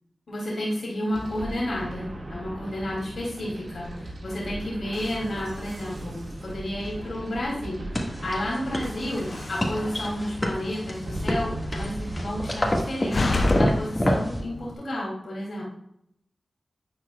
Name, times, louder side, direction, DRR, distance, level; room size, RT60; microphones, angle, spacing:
voice 1, 0.3-15.6, left 1 dB, 80° left, -5 dB, 2.7 m, -31 dB
sound 1, 1.1-12.8, right 1 dB, 80° right, 1.9 m, -38 dB
sound 2, 7.9-14.4, equal, 35° left, 1.7 m, -28 dB
Slam, 9.1-14.7, left 2 dB, 60° left, 0.6 m, -31 dB
10.5 x 4.6 x 2.3 m, 0.74 s
cardioid pair, 40°, 0 cm